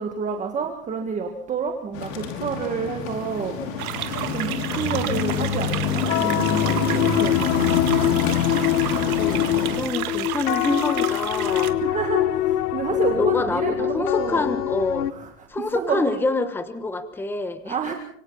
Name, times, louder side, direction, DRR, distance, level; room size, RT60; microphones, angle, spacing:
voice 1, 0.0-3.6 4.3-7.6 11.8-14.5 15.1-15.3 15.7-16.2 17.7-17.9, right 6 dB, 15° right, 3 dB, 1.8 m, -29 dB
sound 1, 1.9-9.8, left 6 dB, 55° left, 5.5 m, -26 dB
sound 2, 3.8-11.7, right 14 dB, 70° right, 1.9 m, -32 dB
sound 3, 6.1-15.1, left 14 dB, 80° left, 1.2 m, -24 dB
voice 2, 8.0-8.4 9.2-11.8 12.9-15.1 15.5-17.8, left 2 dB, 5° left, 10 dB, 1.2 m, -27 dB
26.0 x 24.5 x 4.1 m, 0.63 s
supercardioid pair, 150°, 46 cm